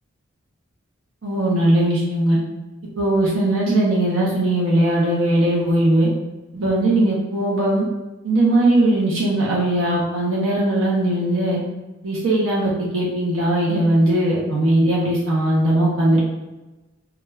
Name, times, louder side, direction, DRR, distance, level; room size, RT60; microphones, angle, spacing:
voice 1, 1.2-2.4 3.0-6.1 6.5-7.8 8.2-11.6 12.0-16.2, right 1 dB, 75° right, -5 dB, 0.7 m, -19 dB
2.3 x 2.3 x 3.1 m, 1.1 s
head